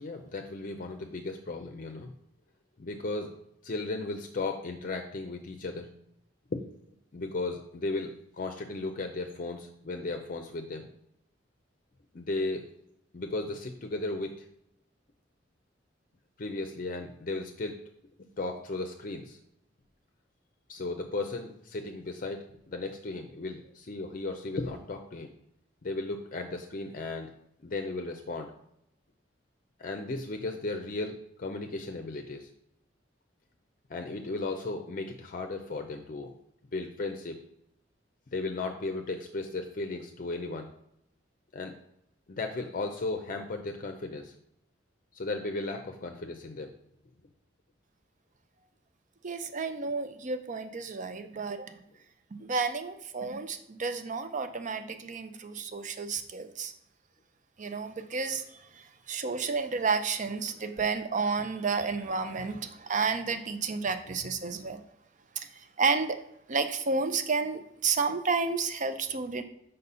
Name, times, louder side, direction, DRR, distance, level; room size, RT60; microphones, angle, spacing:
voice 1, 0.0-2.1 2.8-3.3 3.6-5.9 6.5-6.6 7.1-10.9 12.1-12.6 13.1-14.4 16.4-17.8 18.4-19.4 20.7-25.3 25.8-27.3 27.6-28.5 29.8-32.5 33.9-36.3 36.7-37.4 38.3-40.7 41.5-41.7 42.3-44.3 45.1-46.7, left 2 dB, 45° left, 5 dB, 0.5 m, -35 dB
voice 2, 49.2-51.8 52.4-56.7 57.6-64.8 65.4-66.2 66.5-69.4, right 4 dB, 45° right, 9 dB, 0.6 m, -31 dB
5.4 x 4.1 x 5.5 m, 0.77 s
head